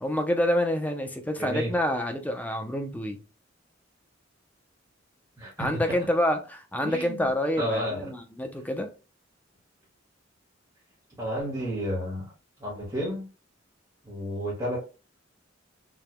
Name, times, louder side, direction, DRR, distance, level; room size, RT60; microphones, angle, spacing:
voice 1, 0.0-3.2 5.6-8.9, left 1 dB, 10° left, 0.6 m, -27 dB
voice 2, 1.4-1.7 5.4-5.8 6.8-8.1 11.2-12.3 12.6-13.3 14.0-14.8, equal, 15° right, 1.7 m, -31 dB
4.8 x 3.4 x 2.2 m
head